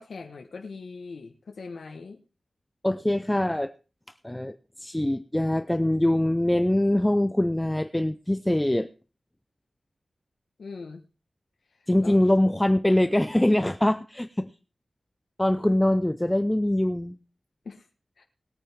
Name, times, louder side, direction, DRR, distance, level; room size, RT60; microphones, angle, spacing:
voice 1, 0.0-2.2 10.6-11.0 12.0-12.1 17.6-17.8 18.2-18.3, left 4 dB, 75° left, 2 dB, 1.3 m, -40 dB
voice 2, 2.8-3.7 4.2-8.9 11.9-14.5 15.4-17.2, left 1 dB, 10° left, 11 dB, 0.5 m, -23 dB
20.5 x 9.1 x 3.6 m, 0.33 s
wide cardioid pair, 125°, 0 cm